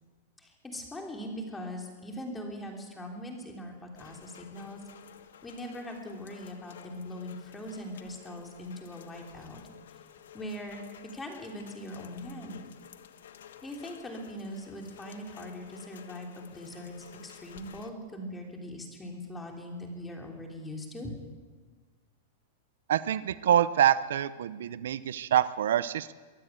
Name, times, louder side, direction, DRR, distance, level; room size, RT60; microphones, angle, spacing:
voice 1, 0.4-4.8 5.4-9.6 10.3-10.8 11.1-12.6 13.6-21.1, left 1 dB, 10° left, 2 dB, 3.4 m, -41 dB
Rain, 3.9-17.9, left 9 dB, 85° left, 1.4 m, -52 dB
voice 2, 22.9-26.1, right 10 dB, 80° right, 16 dB, 0.7 m, -26 dB
23.5 x 12.5 x 9.1 m, 1.4 s
supercardioid pair, 155°, 0 cm